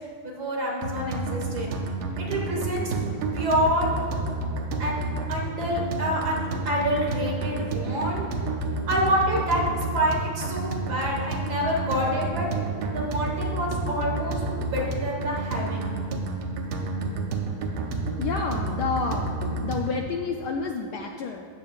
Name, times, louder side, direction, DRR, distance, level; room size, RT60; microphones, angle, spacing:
voice 1, 0.2-1.7 2.2-2.9 3.3-3.9 4.8-5.0 5.3-8.3 8.9-9.6 9.9-12.5 12.9-15.9, equal, 50° right, -2 dB, 2.0 m, -27 dB
sound 1, 0.8-20.0, right 3 dB, 85° right, 1.7 m, -30 dB
voice 2, 18.2-19.3 19.6-21.5, left 4 dB, 85° left, 2 dB, 0.9 m, -29 dB
14.0 x 8.7 x 2.4 m, 2.2 s
omnidirectional pair, 2.4 m